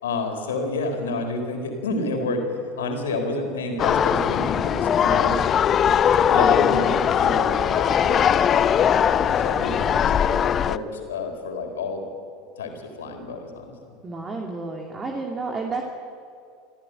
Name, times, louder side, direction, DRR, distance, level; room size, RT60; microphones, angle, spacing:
voice 1, 0.0-2.4 2.8-5.4 6.3-12.0 12.6-13.9, left 2 dB, 70° left, 5 dB, 4.3 m, -29 dB
sound 1, 3.8-10.8, left 8 dB, 35° left, 0.7 m, -20 dB
voice 2, 14.0-15.8, right 3 dB, 25° right, 1 dB, 2.7 m, -31 dB
26.5 x 14.5 x 9.2 m, 2.4 s
figure-of-eight pair, 75°, 0 cm